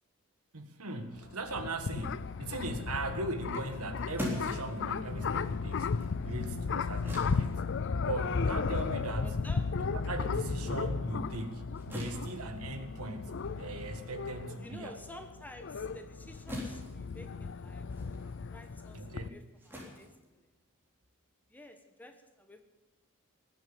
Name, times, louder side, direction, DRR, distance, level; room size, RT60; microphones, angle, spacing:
voice 1, 0.5-7.6 8.0-9.4 9.8-15.0 18.9-19.4, right 2 dB, 85° right, 8 dB, 1.7 m, -39 dB
sound 1, 1.2-19.3, left 5 dB, 55° left, 0.5 m, -35 dB
Backpack Drop, 3.6-10.4 10.8-21.0, left 1 dB, 10° right, 3.6 m, -45 dB
voice 2, 9.2-9.7 14.6-17.8 18.5-20.5 21.5-22.6, left 1 dB, 10° left, 6 dB, 1.3 m, -51 dB
19.5 x 8.0 x 8.8 m, 1.1 s
head